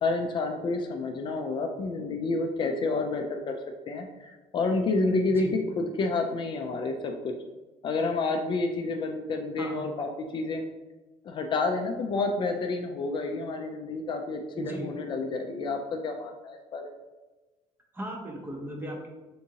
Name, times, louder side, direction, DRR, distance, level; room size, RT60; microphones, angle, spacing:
voice 1, 0.0-3.6 3.9-7.3 7.8-10.6 11.2-16.9, left 3 dB, 40° left, 4 dB, 0.3 m, -29 dB
voice 2, 14.5-14.9 17.9-19.1, right 1 dB, 20° right, 1 dB, 0.6 m, -37 dB
3.5 x 2.8 x 2.7 m, 1.2 s
cardioid pair, 130°, 12 cm